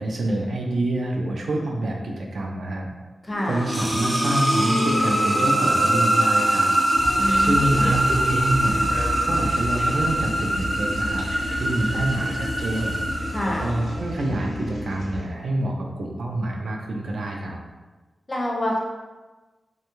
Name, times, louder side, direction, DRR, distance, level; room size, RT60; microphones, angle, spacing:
voice 1, 0.0-2.9 3.4-6.7 7.0-8.8 9.2-11.3 11.6-13.2 13.5-17.6, right 1 dB, 70° right, 1 dB, 0.4 m, -27 dB
voice 2, 3.2-3.6 7.2-7.9 13.3-13.7 18.3-18.8, left 1 dB, 25° left, -1 dB, 0.4 m, -26 dB
sound 1, 3.3-14.1, right 1 dB, 25° right, 0.9 m, -23 dB
sound 2, 6.9-15.3, left 1 dB, 85° left, 0.4 m, -32 dB
2.6 x 2.2 x 2.9 m, 1.2 s
wide cardioid pair, 150°, 0 cm